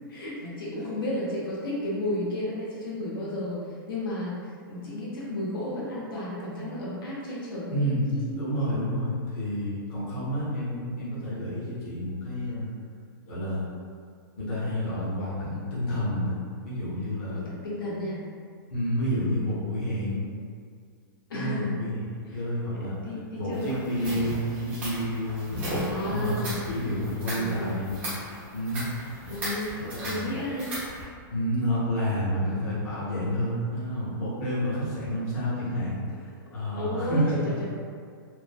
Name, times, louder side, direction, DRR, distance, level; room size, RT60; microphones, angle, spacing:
voice 1, 0.1-3.6 3.9-8.5 17.6-18.3 21.3-21.8 22.3-22.4 22.7-23.7 25.6-26.7 27.3-27.7 29.3-30.8 36.7-37.2 37.6-37.7, left 1 dB, 70° left, -6 dB, 0.8 m, -33 dB
voice 2, 7.7-12.7 13.3-13.6 14.4-17.5 18.7-20.2 21.3-22.0 22.3-23.0 23.4-25.7 26.0-28.0 28.5-28.9 29.8-30.3 31.3-37.5, equal, 40° left, -9 dB, 0.7 m, -29 dB
sound 1, 23.5-31.0, equal, 15° right, 0.6 m, -36 dB
3.1 x 2.1 x 2.2 m, 2.1 s
hypercardioid pair, 175°, 12 cm